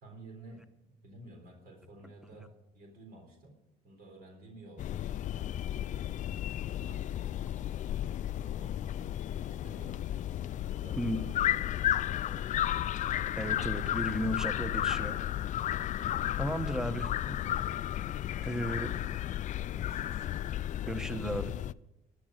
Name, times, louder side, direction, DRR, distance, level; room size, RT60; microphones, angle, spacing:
voice 1, 0.0-2.5 2.7-3.6 3.8-5.0 5.9-6.3 6.7-7.1 8.3-10.0 10.8-11.5 12.1-12.6 16.8-17.1 18.4-19.2 19.8-20.3, right 2 dB, 60° right, 2 dB, 3.9 m, -52 dB
sound 1, 4.8-21.7, left 12 dB, 45° left, 0.4 m, -33 dB
voice 2, 13.4-15.2 16.4-17.1 18.4-18.9 20.9-21.5, equal, 5° right, 10 dB, 1.1 m, -34 dB
13.0 x 11.0 x 6.6 m, 0.92 s
cardioid pair, 110°, 17 cm